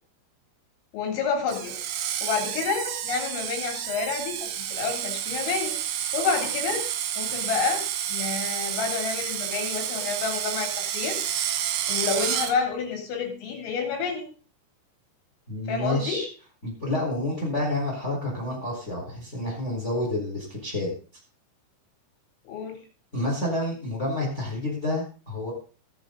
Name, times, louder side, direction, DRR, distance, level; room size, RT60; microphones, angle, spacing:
voice 1, 0.9-1.8 2.2-5.8 6.1-6.8 7.2-11.2 11.9-14.3 15.7-16.2 22.5-22.8, left 5 dB, 80° left, 2 dB, 5.9 m, -29 dB
Screech, 1.5-12.5, right 10 dB, 65° right, 2.7 m, -30 dB
voice 2, 15.5-16.3 16.6-20.9 23.1-25.5, left 1 dB, 15° left, -1 dB, 4.0 m, -29 dB
20.0 x 7.7 x 3.9 m, 0.36 s
omnidirectional pair, 5.8 m